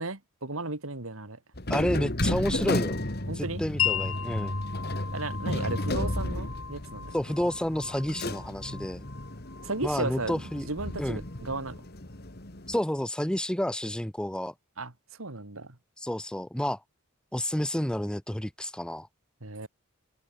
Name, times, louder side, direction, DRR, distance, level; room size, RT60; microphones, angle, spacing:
voice 1, 0.0-1.4 3.3-3.6 5.1-7.1 9.6-11.8 14.8-14.9 15.2-15.8 19.4-19.7, right 2 dB, 80° right, 2.9 m, -35 dB
sound 1, 1.5-12.8, left 1 dB, 50° left, 2.7 m, -33 dB
voice 2, 1.7-3.0 3.4-4.6 7.1-9.0 9.8-10.7 11.0-11.2 12.7-14.5 16.0-16.8 17.3-19.1, left 1 dB, 5° left, 0.6 m, -30 dB
Wind chime, 3.8-11.4, left 10 dB, 80° left, 5.5 m, -37 dB
head